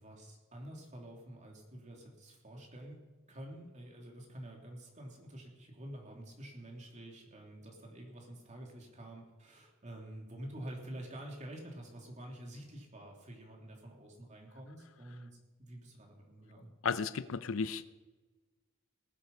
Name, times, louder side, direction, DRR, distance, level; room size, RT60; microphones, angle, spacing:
voice 1, 0.0-3.0 3.3-15.3 15.6-16.7, right 1 dB, 35° right, 0 dB, 3.1 m, -48 dB
voice 2, 16.8-17.8, left 5 dB, 70° left, 15 dB, 0.6 m, -34 dB
19.0 x 8.4 x 5.4 m, 1.3 s
head